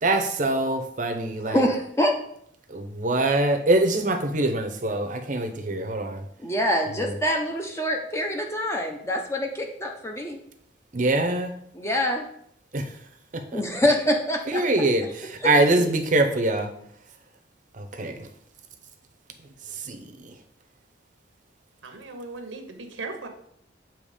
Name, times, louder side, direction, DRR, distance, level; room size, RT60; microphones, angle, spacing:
voice 1, 0.0-1.7 2.7-6.2 7.0-7.1 10.9-11.5 12.7-12.8 13.3-13.6 14.5-16.7 17.8-18.3 19.8-20.1, right 2 dB, 40° right, 5 dB, 0.7 m, -24 dB
voice 2, 1.5-2.2 6.4-10.4 11.7-12.2 13.5-14.6 15.4-15.5, left 1 dB, 15° left, 2 dB, 0.7 m, -25 dB
voice 3, 15.5-15.9 21.8-23.3, right 2 dB, 85° right, 5 dB, 0.9 m, -35 dB
7.1 x 3.0 x 4.9 m, 0.69 s
head